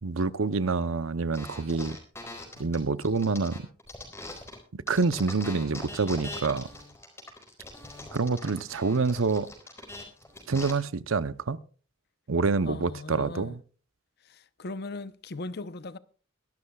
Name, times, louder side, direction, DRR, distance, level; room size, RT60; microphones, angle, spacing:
voice 1, 0.0-2.0 2.6-3.7 4.9-6.7 8.1-9.5 10.5-11.6 12.3-13.6, right 4 dB, 85° right, 0.8 m, -27 dB
sound 1, 1.3-4.6 4.9-10.7, left 2 dB, 15° left, 4.1 m, -42 dB
voice 2, 12.6-13.6 14.2-16.0, left 2 dB, 55° left, 0.8 m, -38 dB
23.0 x 12.5 x 2.3 m
head